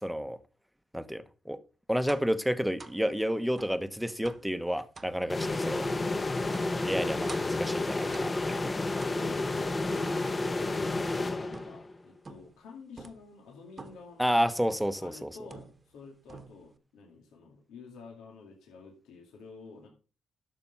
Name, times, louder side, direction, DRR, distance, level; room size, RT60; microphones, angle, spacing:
voice 1, 0.0-0.4 0.9-1.6 1.9-5.9 6.8-8.9 14.2-15.3, equal, ahead, 1.0 m, -30 dB
sound 1, 2.1-2.4 2.8-3.0 3.6-3.8 4.2-4.5 4.9-5.2 5.8-6.0 6.5-6.8 7.3-7.6 8.1-8.5 9.0-9.5 10.0-11.1 11.5-11.9 12.2-12.6 13.0-13.3 13.8-14.1 14.7-15.0 15.5-16.0 16.3-16.8, right 3 dB, 30° right, 1.2 m, -48 dB
sound 2, 5.3-12.0, left 2 dB, 25° left, 0.9 m, -31 dB
voice 2, 8.9-14.4 15.0-19.9, left 4 dB, 85° left, 2.4 m, -50 dB
12.0 x 6.9 x 5.4 m
cardioid pair, 90°, 0 cm